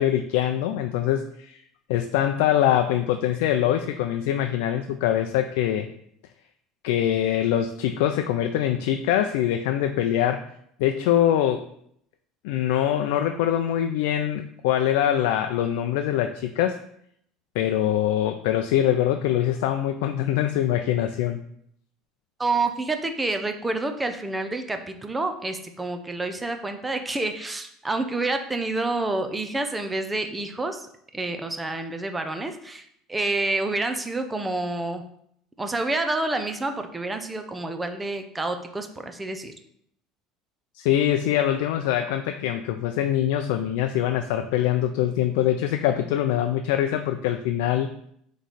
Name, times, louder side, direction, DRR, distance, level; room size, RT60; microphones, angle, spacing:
voice 1, 0.0-1.6 1.9-5.9 6.8-10.4 10.8-11.6 12.4-16.8 17.5-21.4 40.7-47.9, left 11 dB, 80° left, 6 dB, 0.4 m, -23 dB
voice 2, 22.4-35.0 35.6-39.5, right 2 dB, 10° right, 7 dB, 0.6 m, -28 dB
7.5 x 3.1 x 4.1 m, 0.70 s
cardioid pair, 145°, 0 cm